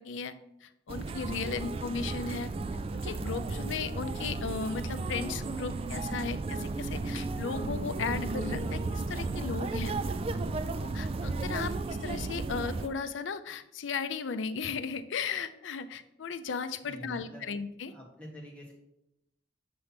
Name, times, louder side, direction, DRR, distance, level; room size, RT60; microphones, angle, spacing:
voice 1, 0.0-2.5 2.9-10.1 10.8-17.9, left 5 dB, 85° left, 11 dB, 0.5 m, -36 dB
sound 1, 0.9-12.9, right 3 dB, 30° right, 0.3 m, -34 dB
voice 2, 16.8-17.5 17.9-18.7, equal, 5° left, -2 dB, 1.4 m, -46 dB
7.0 x 3.3 x 5.8 m, 0.83 s
head